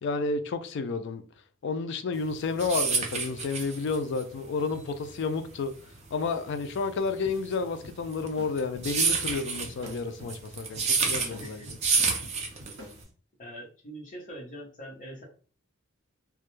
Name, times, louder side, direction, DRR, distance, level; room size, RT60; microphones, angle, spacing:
voice 1, 0.0-1.2 1.6-5.7 6.1-11.8, left 4 dB, 55° left, 0.3 m, -31 dB
sound 1, 2.2-13.0, right 5 dB, 30° right, 0.4 m, -29 dB
sound 2, 7.2-13.1, left 1 dB, 65° right, 0.9 m, -48 dB
voice 2, 13.4-15.2, equal, 35° left, 0.7 m, -43 dB
2.2 x 2.1 x 3.0 m
head